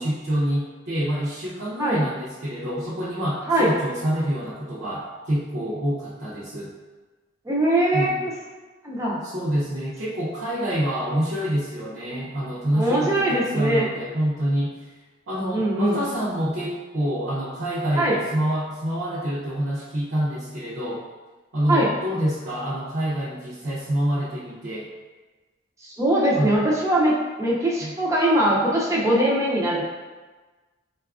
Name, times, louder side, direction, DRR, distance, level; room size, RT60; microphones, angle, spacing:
voice 1, 0.0-6.7 7.9-8.2 9.2-14.9 15.3-21.1 21.5-24.9 26.4-26.7 27.8-27.9, equal, 60° right, -9 dB, 0.6 m, -27 dB
voice 2, 7.5-8.1 8.8-9.2 12.7-13.9 15.5-16.0 18.0-18.2 21.7-21.9 25.8-29.8, right 1 dB, 15° right, -5 dB, 0.4 m, -21 dB
4.0 x 2.3 x 2.4 m, 1.3 s
head